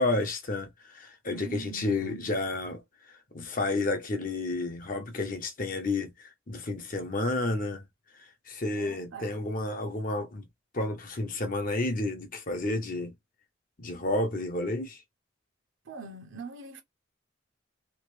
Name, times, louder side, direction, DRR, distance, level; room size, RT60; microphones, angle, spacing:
voice 1, 0.0-7.8 8.1-10.5 10.7-13.1 13.8-15.0, left 2 dB, 45° left, 0.9 m, -31 dB
voice 2, 1.3-2.3 8.7-9.3 15.9-16.8, right 4 dB, 75° right, 1.1 m, -43 dB
3.1 x 2.6 x 3.2 m
head